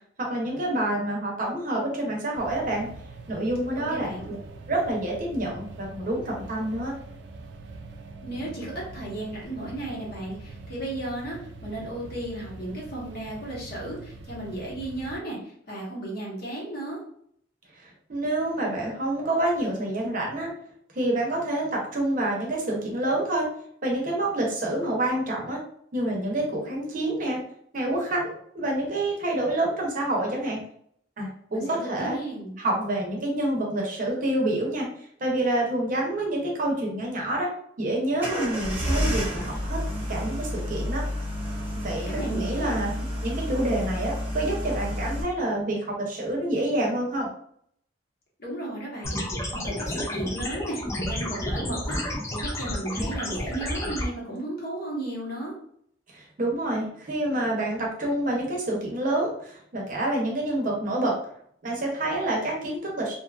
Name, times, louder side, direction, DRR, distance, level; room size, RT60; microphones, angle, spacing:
voice 1, 0.2-2.9 3.3-4.4 4.7-6.9 17.8-20.5 20.9-23.5 23.8-25.6 25.9-27.4 27.7-30.6 31.2-32.2 32.6-34.9 35.2-37.5 37.8-39.8 40.1-41.0 41.7-42.9 43.2-47.3 56.1-61.1 61.6-63.1, right 1 dB, 45° right, -1 dB, 0.7 m, -27 dB
sound 1, 2.3-15.2, right 3 dB, 65° right, 0.3 m, -43 dB
voice 2, 3.8-4.2 8.2-17.0 31.5-32.6 42.2-43.1 48.4-55.5, right 1 dB, 55° left, -4 dB, 1.0 m, -35 dB
sound 2, 38.2-45.2, equal, 10° right, 0.9 m, -30 dB
sound 3, 49.0-54.0, left 1 dB, 15° left, 0.4 m, -31 dB
2.6 x 2.3 x 2.4 m, 0.65 s
head